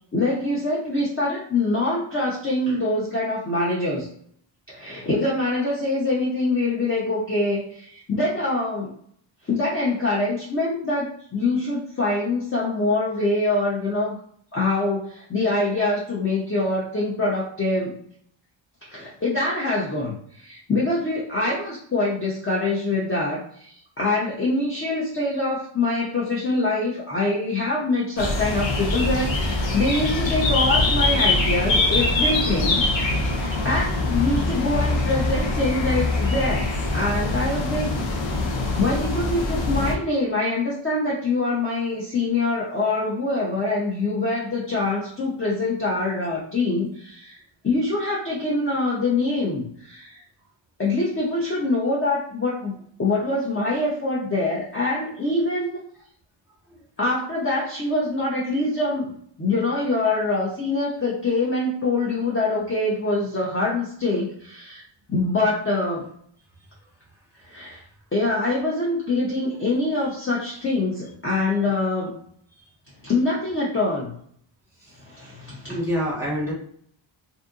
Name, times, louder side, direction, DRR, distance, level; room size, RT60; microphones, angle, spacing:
voice 1, 0.1-4.1 4.7-8.9 9.5-14.2 14.5-18.0 18.9-32.8 33.3-37.9 38.8-47.4 47.6-50.2 50.8-55.7 57.0-59.1 59.4-64.8 65.1-66.0 67.5-67.8 68.1-72.1 73.0-74.1 75.0-75.8, left 2 dB, 25° left, -6 dB, 0.6 m, -24 dB
sound 1, 28.2-39.9, left 2 dB, 65° left, 0.7 m, -23 dB
voice 2, 75.7-76.5, equal, 5° right, -7 dB, 1.3 m, -27 dB
2.6 x 2.5 x 2.4 m, 0.63 s
wide cardioid pair, 120°, 48 cm